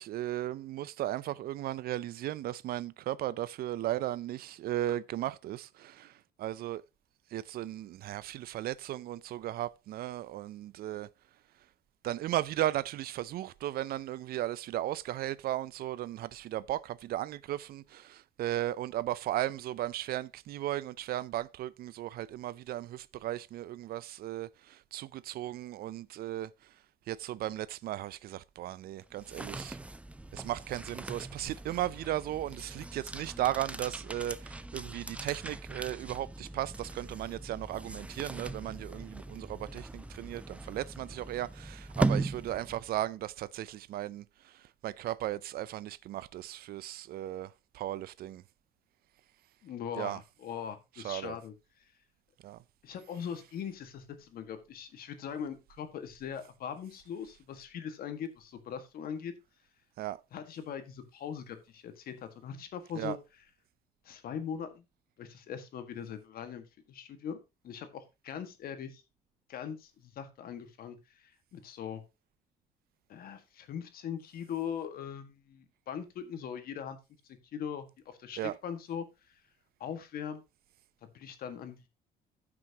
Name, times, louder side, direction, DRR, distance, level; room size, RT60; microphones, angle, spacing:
voice 1, 0.0-6.8 7.3-11.1 12.0-26.5 27.1-29.8 30.3-48.4 50.0-50.2 51.0-51.4 52.4-52.6 60.0-60.2 63.0-63.2 78.4-78.6, right 13 dB, 65° right, 0.5 m, -36 dB
sound 1, 29.0-43.1, right 2 dB, 5° right, 0.5 m, -39 dB
voice 2, 49.6-51.5 51.8-51.9 52.8-59.3 60.3-63.2 64.0-64.8 65.2-67.4 67.6-69.0 69.5-72.0 73.1-77.0 77.5-79.4 79.8-80.4 81.0-81.9, left 8 dB, 60° left, 1.7 m, -41 dB
14.5 x 6.1 x 2.9 m
cardioid pair, 110°, 17 cm